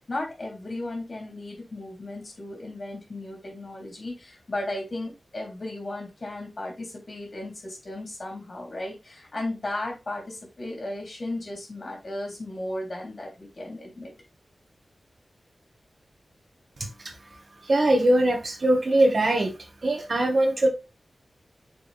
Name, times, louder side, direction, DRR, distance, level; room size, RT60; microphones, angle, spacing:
voice 1, 0.0-14.1, left 1 dB, 45° left, 1 dB, 3.6 m, -35 dB
voice 2, 17.7-19.5 19.8-20.7, right 1 dB, 50° right, 4 dB, 1.7 m, -21 dB
6.9 x 4.8 x 3.5 m, 0.26 s
wide cardioid pair, 75°, 0 cm